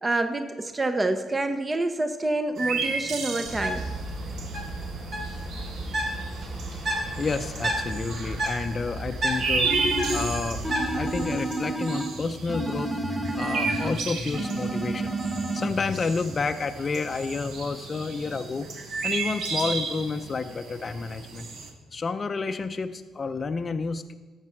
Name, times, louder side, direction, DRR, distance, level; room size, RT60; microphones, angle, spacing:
voice 1, 0.0-3.8, right 2 dB, 25° right, 8 dB, 0.7 m, -27 dB
sound 1, 2.6-21.7, right 4 dB, 80° right, 1.2 m, -34 dB
Bird, 3.4-11.2, right 1 dB, 60° right, 3.7 m, -32 dB
voice 2, 7.2-21.5 21.9-24.1, left 4 dB, 35° left, 7 dB, 0.5 m, -30 dB
sound 2, 9.6-10.3 10.6-12.2 12.5-14.0 14.3-15.7, right 2 dB, ahead, 1.3 m, -30 dB
13.0 x 7.3 x 4.4 m, 1.3 s
cardioid pair, 90°, 0 cm